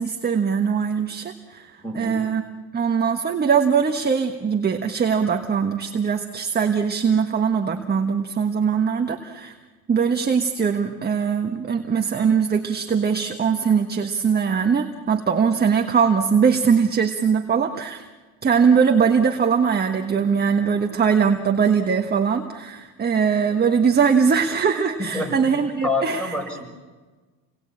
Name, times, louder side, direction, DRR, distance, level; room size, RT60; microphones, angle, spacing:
voice 1, 0.0-2.4 2.7-9.5 9.9-18.1 18.4-26.3, right 6 dB, 20° right, 4 dB, 1.4 m, -21 dB
voice 2, 1.8-2.2 25.0-25.6 25.8-26.6, left 2 dB, ahead, 3 dB, 6.4 m, -27 dB
30.0 x 21.5 x 8.8 m, 1.3 s
cardioid pair, 125°, 44 cm